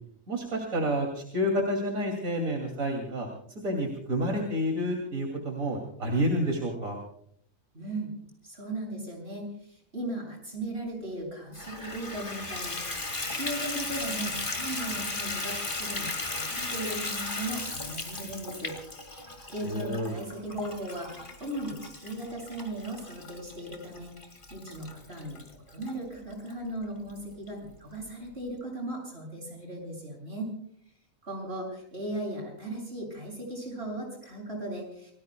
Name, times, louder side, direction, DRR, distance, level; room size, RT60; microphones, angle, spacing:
voice 1, 0.3-7.0 19.6-20.1, equal, 75° right, 1 dB, 3.1 m, -29 dB
voice 2, 7.7-8.1 8.4-18.8 19.5-30.5 31.2-35.1, right 1 dB, 45° right, 0 dB, 7.7 m, -37 dB
Water tap faucet / Bathtub (filling or washing), 11.5-25.9 26.5-26.6 27.1-27.2 27.5-27.6, left 3 dB, 35° left, 2.3 m, -36 dB
29.5 x 19.0 x 2.2 m, 0.66 s
omnidirectional pair, 1.4 m